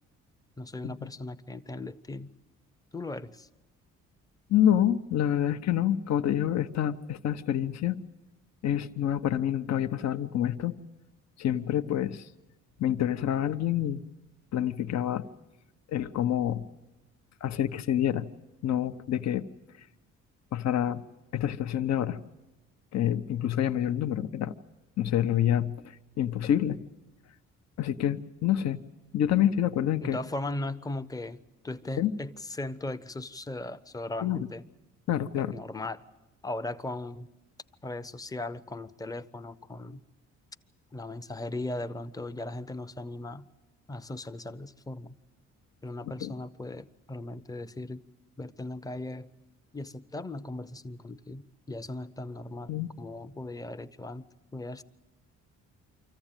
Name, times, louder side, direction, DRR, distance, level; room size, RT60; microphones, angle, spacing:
voice 1, 0.6-2.3 2.9-3.5 30.0-34.7 35.4-36.0 36.4-37.3 37.8-40.0 40.9-43.5 43.9-45.2 45.8-48.0 48.4-49.3 49.7-54.2 54.5-54.8, left 2 dB, 10° left, 11 dB, 0.7 m, -38 dB
voice 2, 4.5-8.0 8.6-10.7 11.4-12.3 12.8-14.0 14.5-15.2 15.9-16.6 17.4-18.3 18.6-19.5 20.5-21.0 21.3-22.2 22.9-24.5 25.0-25.8 26.2-26.8 27.8-28.8 29.1-30.2 32.0-32.1 34.2-34.4 35.1-35.5 46.2-46.3 52.7-52.9, left 11 dB, 60° left, 9 dB, 0.8 m, -27 dB
25.0 x 14.5 x 8.9 m, 1.0 s
cardioid pair, 100°, 31 cm